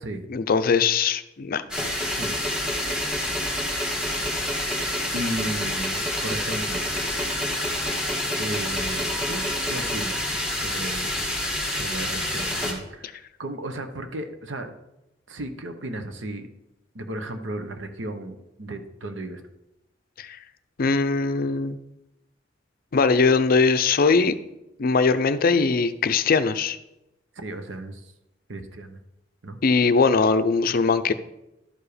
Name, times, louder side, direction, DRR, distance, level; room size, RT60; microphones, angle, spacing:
voice 1, 0.3-1.6 20.2-20.4 20.8-21.8 22.9-24.4 24.8-26.8 29.6-31.1, left 4 dB, 50° left, 12 dB, 0.5 m, -21 dB
sound 1, 1.7-12.7, left 1 dB, 5° right, 1.6 m, -27 dB
voice 2, 5.1-6.8 8.4-11.2 11.7-14.7 15.3-16.5 16.9-19.4 27.4-28.1 28.5-29.0 29.4-29.6, right 1 dB, 75° right, 7 dB, 1.0 m, -34 dB
11.5 x 4.9 x 5.0 m, 0.90 s
head